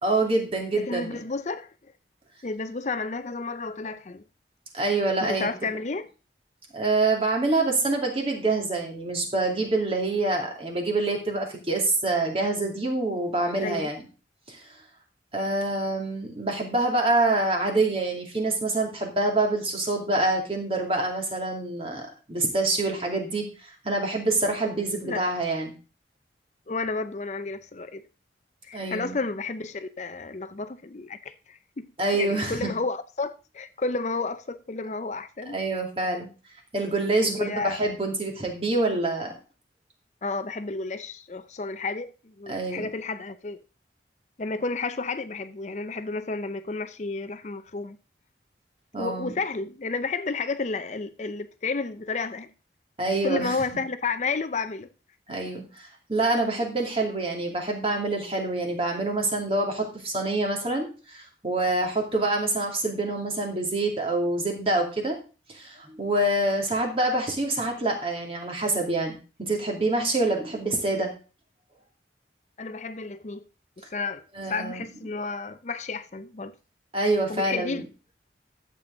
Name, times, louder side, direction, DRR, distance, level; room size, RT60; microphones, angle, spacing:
voice 1, 0.0-1.2 4.7-5.5 6.7-14.0 14.5-14.6 15.3-25.7 28.7-29.2 32.0-32.7 35.5-36.3 36.7-39.3 42.5-42.9 48.9-49.3 53.0-53.5 55.3-65.2 65.5-71.1 74.4-74.8 76.9-77.8, right 2 dB, 30° right, 2.5 m, -26 dB
voice 2, 0.7-1.7 2.4-4.2 5.2-6.1 13.6-13.9 25.0-25.2 26.7-28.0 28.6-31.9 32.1-35.6 37.2-37.8 40.2-43.6 44.4-48.0 49.0-52.5 53.2-54.9 72.6-73.4 73.9-74.2 74.5-76.5 77.3-77.8, left 3 dB, 40° left, 0.5 m, -31 dB
12.0 x 7.6 x 3.8 m
head